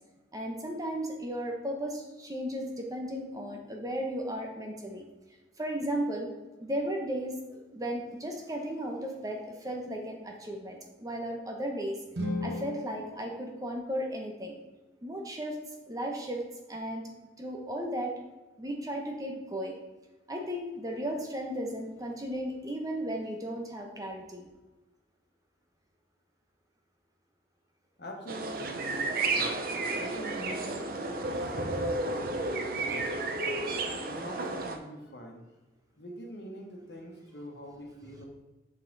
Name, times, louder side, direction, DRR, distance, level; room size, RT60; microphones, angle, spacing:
voice 1, 0.3-5.0 5.6-6.3 6.6-12.0 12.4-14.5 15.0-15.6 15.9-17.1 17.4-18.1 18.6-19.7 20.3-24.5, equal, 20° right, 1 dB, 0.9 m, -35 dB
sound 1, 12.1-14.3, left 1 dB, 75° right, 1.1 m, -37 dB
voice 2, 28.0-29.5 30.0-30.9 31.2-32.0 32.4-33.0 34.1-35.5 36.0-38.3, equal, 65° left, 1 dB, 1.4 m, -44 dB
sound 2, 28.3-34.8, right 2 dB, 50° right, 0.7 m, -32 dB
6.6 x 5.6 x 4.0 m, 1.1 s
head